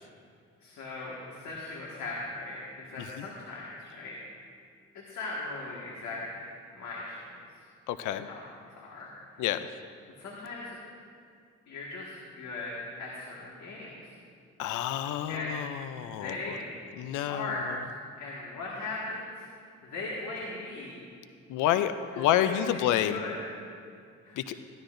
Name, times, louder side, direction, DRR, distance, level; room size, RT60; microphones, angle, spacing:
voice 1, 0.6-4.2 4.9-6.4 6.7-7.4 8.2-8.4 8.7-9.3 10.2-10.8 11.7-14.1 15.3-16.7 17.3-17.6 18.2-19.5 19.8-21.1 22.1-23.4 24.2-24.4, left 3 dB, 70° left, -4 dB, 1.8 m, -39 dB
voice 2, 7.9-8.3 9.4-9.7 14.6-16.5 17.0-17.5 21.5-23.2 24.4-24.6, left 11 dB, 90° left, 11 dB, 0.5 m, -29 dB
14.5 x 12.0 x 2.6 m, 2.2 s
cardioid pair, 90°, 30 cm